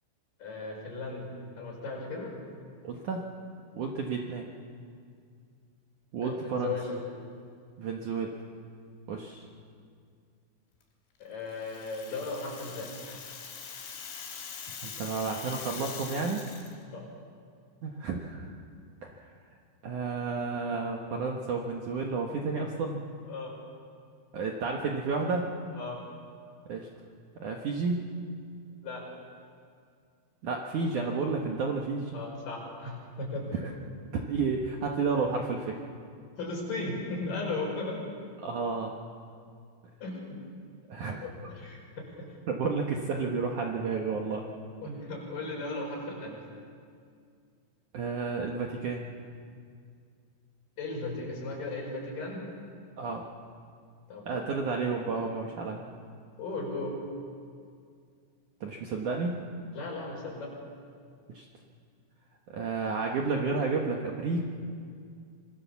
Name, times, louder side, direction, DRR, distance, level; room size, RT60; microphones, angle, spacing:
voice 1, 0.4-1.3 1.5-2.3 6.2-7.0 11.2-13.3 16.9-17.1 23.2-23.5 25.7-26.0 28.8-29.0 32.1-33.6 36.4-38.1 40.0-40.4 41.2-42.3 44.8-46.4 50.8-52.4 54.1-54.5 56.4-57.0 59.7-60.5, left 3 dB, 40° left, -2 dB, 6.8 m, -36 dB
voice 2, 2.8-3.2 3.7-4.5 6.1-6.8 7.8-8.3 9.1-9.4 14.7-16.4 17.8-18.5 19.0-19.3 19.8-23.0 24.3-25.5 26.7-26.9 27.4-28.1 30.4-32.2 34.3-35.8 38.4-38.9 40.9-41.2 42.5-44.4 47.9-49.0 53.0-53.2 54.2-55.8 58.6-59.4 61.3-61.4 62.5-64.4, right 4 dB, 90° right, 1 dB, 1.7 m, -31 dB
Rattle (instrument), 11.5-16.7, left 6 dB, 70° left, 5.7 m, -43 dB
26.0 x 23.0 x 7.2 m, 2.2 s
omnidirectional pair, 5.9 m